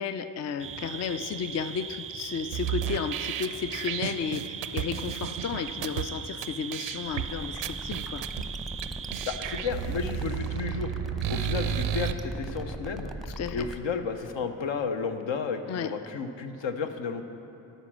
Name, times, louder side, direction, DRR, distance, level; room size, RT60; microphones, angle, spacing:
voice 1, 0.0-8.3 13.4-13.7 15.7-15.9, left 7 dB, 35° left, 11 dB, 0.4 m, -33 dB
sound 1, 0.6-9.6, right 8 dB, 30° right, 0.4 m, -39 dB
sound 2, 2.5-6.0 6.4-6.5 6.7-7.2 7.6-8.4 8.8-8.9 9.1-12.1, right 10 dB, 85° right, 0.6 m, -32 dB
sound 3, 7.0-13.8, right 1 dB, ahead, 0.7 m, -40 dB
voice 2, 9.2-10.9 11.3-13.1 13.5-17.2, left 5 dB, 65° left, 7 dB, 0.9 m, -32 dB
11.0 x 5.3 x 7.3 m, 3.0 s
supercardioid pair, 60°, 48 cm